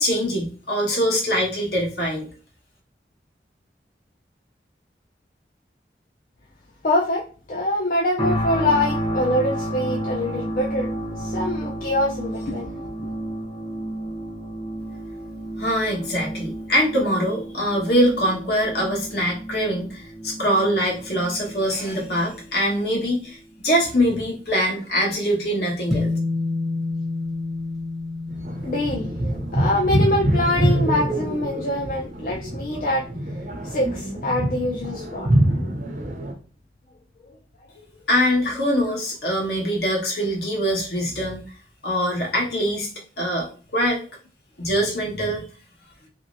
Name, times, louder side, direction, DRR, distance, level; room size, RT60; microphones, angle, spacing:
voice 1, 0.0-2.3 15.6-23.4 23.6-26.1 38.1-41.4 41.8-42.9 43.2-44.0 44.6-45.4, equal, 70° left, -2 dB, 1.2 m, -23 dB
voice 2, 6.8-7.2 7.5-12.8 28.6-33.1 33.6-35.3 37.3-37.4, left 1 dB, 50° left, -2 dB, 0.4 m, -24 dB
sound 1, 8.2-23.2 23.7-23.9, right 1 dB, 30° left, 0.9 m, -31 dB
sound 2, 25.9-32.5, left 3 dB, ahead, 0.7 m, -30 dB
sound 3, 28.3-36.3, right 1 dB, 45° right, 0.6 m, -25 dB
3.0 x 2.9 x 2.5 m, 0.39 s
head